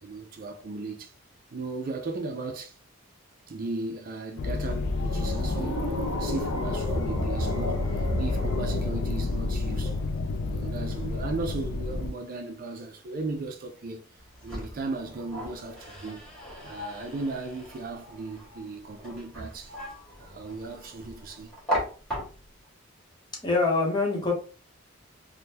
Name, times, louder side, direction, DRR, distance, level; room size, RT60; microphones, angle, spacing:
voice 1, 0.0-1.1 1.5-2.7 3.5-10.0 10.4-14.1 14.4-16.3 16.6-19.7 20.2-21.5, right 3 dB, 45° right, 0.4 m, -36 dB
sound 1, 4.4-12.1, left 3 dB, 60° left, 0.3 m, -30 dB
sound 2, 4.8-10.0, left 1 dB, 85° left, 0.9 m, -33 dB
sound 3, 14.2-22.7, equal, 5° left, 1.6 m, -38 dB
voice 2, 23.4-24.3, left 3 dB, 20° left, 0.9 m, -24 dB
3.5 x 2.2 x 2.8 m
head